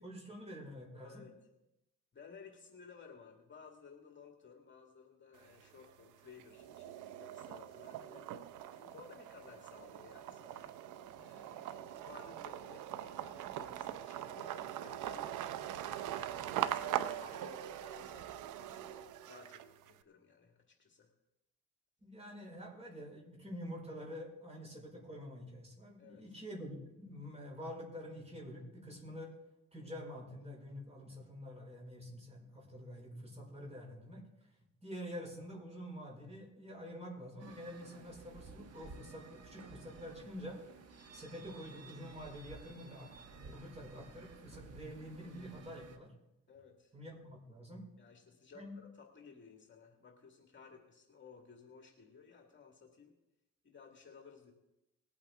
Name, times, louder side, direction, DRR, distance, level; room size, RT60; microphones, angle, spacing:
voice 1, 0.0-1.2 22.0-29.4 29.7-34.2 34.8-40.6 41.1-46.1 46.9-47.8 48.5-48.8, equal, 20° right, -1 dB, 5.0 m, -47 dB
voice 2, 1.0-1.4 2.1-8.3 8.7-10.7 11.1-15.6 16.1-18.9 19.2-21.1 26.0-26.2 46.5-46.9 48.0-53.1 53.6-54.5, left 6 dB, 40° left, 1 dB, 2.1 m, -57 dB
sound 1, 5.4-6.0 6.4-19.9, right 11 dB, 85° right, 0.7 m, -42 dB
sound 2, 37.4-46.0, right 4 dB, 55° right, 1.5 m, -55 dB
20.0 x 8.7 x 3.7 m, 0.91 s
cardioid pair, 90°, 30 cm